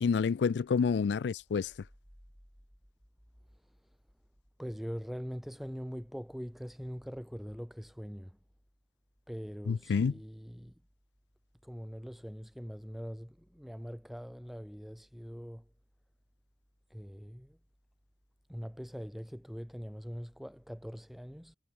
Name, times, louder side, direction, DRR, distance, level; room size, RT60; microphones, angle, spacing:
voice 1, 0.0-1.7 9.7-10.1, left 5 dB, 80° left, 0.4 m, -28 dB
voice 2, 4.6-8.4 9.3-10.7 11.6-15.7 16.9-17.6 18.5-21.6, equal, ahead, 7.0 m, -42 dB
head